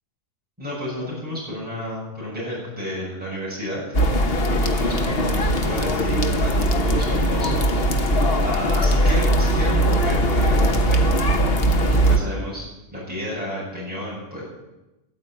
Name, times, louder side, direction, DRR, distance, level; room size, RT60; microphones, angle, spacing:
voice 1, 0.6-3.8 4.6-11.0 11.8-14.4, left 1 dB, 5° right, -7 dB, 7.3 m, -31 dB
sound 1, 3.9-12.2, right 1 dB, 55° left, 1.4 m, -20 dB
14.0 x 9.2 x 8.9 m, 0.98 s
omnidirectional pair, 1.3 m